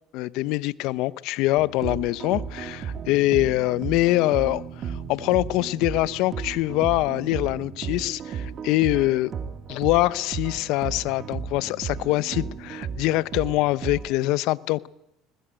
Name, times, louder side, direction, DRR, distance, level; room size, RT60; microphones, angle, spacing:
voice 1, 0.1-9.3 9.7-14.9, left 18 dB, 70° left, 18 dB, 0.8 m, -24 dB
sound 1, 1.6-14.2, right 7 dB, 45° right, 2.9 m, -34 dB
20.5 x 20.5 x 9.1 m, 0.81 s
supercardioid pair, 85°, 0 cm